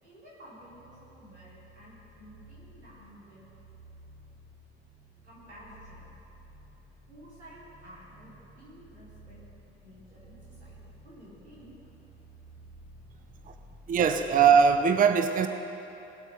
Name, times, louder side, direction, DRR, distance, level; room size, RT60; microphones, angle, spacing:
voice 1, 0.0-3.5 5.2-6.2 7.1-9.4 9.8-11.9 13.1-13.2, equal, 90° right, -8 dB, 3.7 m, -52 dB
sound 1, 0.6-14.8, right 1 dB, 5° right, 3.1 m, -54 dB
voice 2, 13.9-15.5, right 6 dB, 25° right, 7 dB, 0.7 m, -21 dB
18.5 x 8.3 x 5.6 m, 3.0 s
figure-of-eight pair, 65°, 33 cm